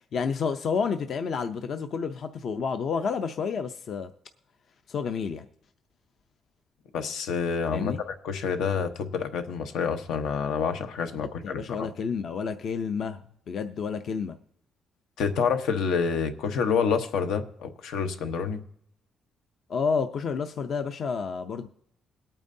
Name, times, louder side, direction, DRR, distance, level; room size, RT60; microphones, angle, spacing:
voice 1, 0.0-4.1 4.9-5.5 7.7-8.0 11.2-13.2 13.5-14.4 19.7-21.7, left 5 dB, 45° left, 8 dB, 0.5 m, -30 dB
voice 2, 6.9-11.9 15.2-18.6, left 6 dB, 80° left, 8 dB, 1.0 m, -28 dB
21.5 x 8.9 x 2.7 m, 0.72 s
cardioid pair, 165°, 0 cm